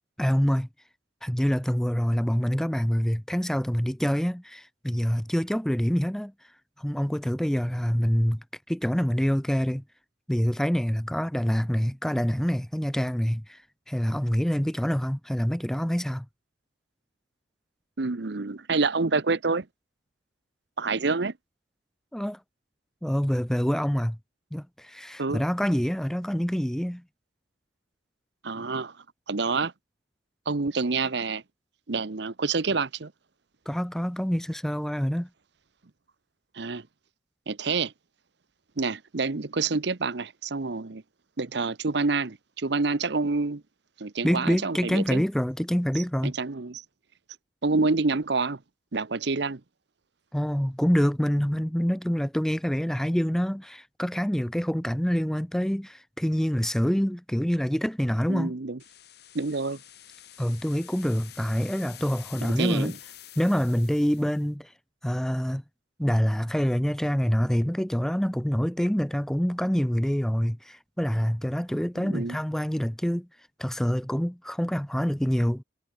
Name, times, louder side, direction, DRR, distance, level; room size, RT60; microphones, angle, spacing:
voice 1, 0.2-0.7 1.2-6.3 6.8-9.8 10.3-13.6 13.9-16.3 22.1-22.4 23.0-24.2 24.5-27.0 33.7-35.3 44.2-46.3 50.3-58.6 60.4-62.9 63.4-64.7 65.0-65.6 66.0-73.3 73.6-75.6, equal, ahead, 0.4 m, -26 dB
voice 2, 18.0-19.7 20.8-21.3 25.2-25.4 28.4-28.9 29.3-29.7 30.5-31.4 31.9-33.1 36.5-36.9 37.5-37.9 38.8-41.0 41.4-43.6 44.0-45.2 46.2-46.8 47.6-48.6 48.9-49.6 58.3-58.8 59.3-59.8 62.6-62.9 72.0-72.4, right 4 dB, 60° right, 0.8 m, -27 dB
sound 1, 58.8-64.5, left 12 dB, 55° left, 4.4 m, -48 dB
head